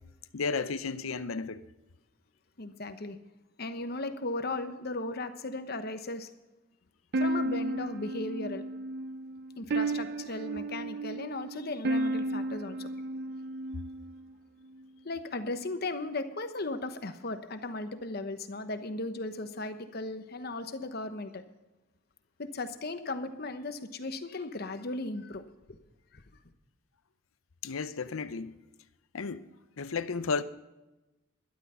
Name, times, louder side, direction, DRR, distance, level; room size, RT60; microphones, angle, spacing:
voice 1, 0.3-1.6 27.6-28.5 29.1-29.5 29.8-30.4, left 4 dB, 85° left, 0.6 m, -33 dB
voice 2, 2.6-3.2 3.6-6.3 7.2-8.6 9.6-12.9 15.0-21.4 22.4-25.8 26.1-26.2, left 2 dB, 50° left, 1.0 m, -36 dB
sound 1, 7.1-14.2, right 2 dB, 50° right, 0.5 m, -33 dB
12.5 x 12.0 x 5.6 m
head